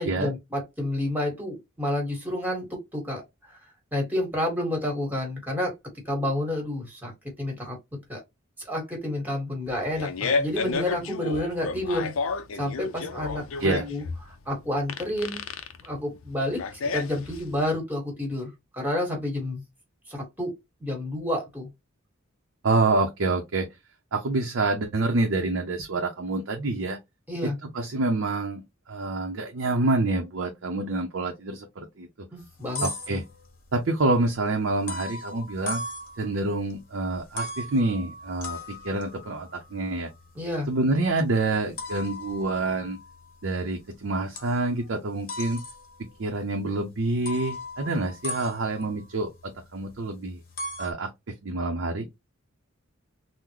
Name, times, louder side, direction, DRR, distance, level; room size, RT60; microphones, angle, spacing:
voice 1, 0.0-2.7 2.9-3.6 3.9-5.7 6.0-7.1 7.4-7.8 8.1-8.2 8.6-12.1 12.6-15.4 15.8-16.6 16.9-19.6 20.1-20.5 20.8-21.7 27.3-27.6 32.3-33.2 40.3-40.7, left 1 dB, 10° right, 1.4 m, -30 dB
Fart, 9.7-17.6, left 4 dB, 70° left, 0.5 m, -31 dB
voice 2, 22.6-23.7 24.1-27.0 27.4-32.1 32.8-33.2 33.7-35.8 36.2-40.1 40.7-43.0 43.4-45.6 46.2-50.4 50.8-51.1 51.4-52.1, right 2 dB, 65° right, 0.6 m, -27 dB
sound 1, 32.4-33.7 34.9-36.7 37.1-43.9 44.4-44.9 45.3-46.3 46.7-46.8 47.2-50.0 50.3-50.9, left 2 dB, 45° left, 1.2 m, -38 dB
3.7 x 2.1 x 2.9 m
head